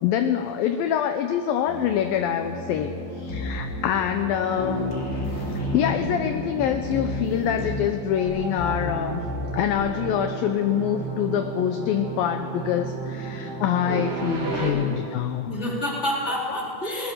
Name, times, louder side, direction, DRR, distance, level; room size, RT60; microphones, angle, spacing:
voice 1, 0.0-4.9 5.3-9.2 9.5-15.5 16.3-16.4, left 9 dB, 75° left, 7 dB, 2.2 m, -25 dB
sound 1, 1.7-14.7, right 3 dB, 70° right, 5.6 m, -34 dB
sound 2, 3.3-3.9 4.2-4.3 4.6-9.9, left 2 dB, 30° left, 2.6 m, -31 dB
voice 2, 14.5-14.9 15.4-17.1, left 1 dB, 15° left, -4 dB, 3.8 m, -29 dB
24.5 x 19.0 x 6.6 m, 2.5 s
omnidirectional pair, 5.0 m